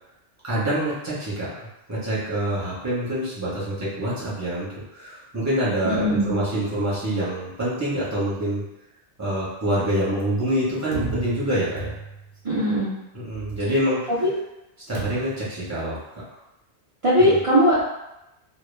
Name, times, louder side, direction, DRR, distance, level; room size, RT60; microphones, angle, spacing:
voice 1, 0.4-1.5 1.9-8.6 9.2-11.9 13.1-14.1 14.9-16.2 17.2-17.4, right 1 dB, 15° right, -8 dB, 0.7 m, -26 dB
voice 2, 5.8-6.3 12.4-12.9 14.2-14.3 17.0-17.9, equal, 50° right, -9 dB, 0.4 m, -19 dB
sound 1, 10.9-12.4 14.9-15.5, right 3 dB, 70° right, 0.8 m, -33 dB
2.2 x 2.1 x 3.2 m, 0.92 s
omnidirectional pair, 1.2 m